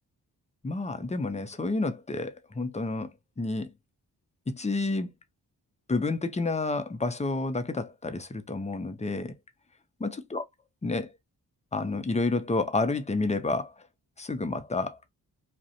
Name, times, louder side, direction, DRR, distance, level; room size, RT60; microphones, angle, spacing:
voice 1, 0.6-3.1 3.4-3.7 4.5-5.1 5.9-9.3 10.0-10.4 10.8-11.1 11.7-13.7 14.2-15.0, left 3 dB, 15° left, 0.5 m, -29 dB
2.5 x 2.1 x 2.7 m
cardioid pair, 50°, 42 cm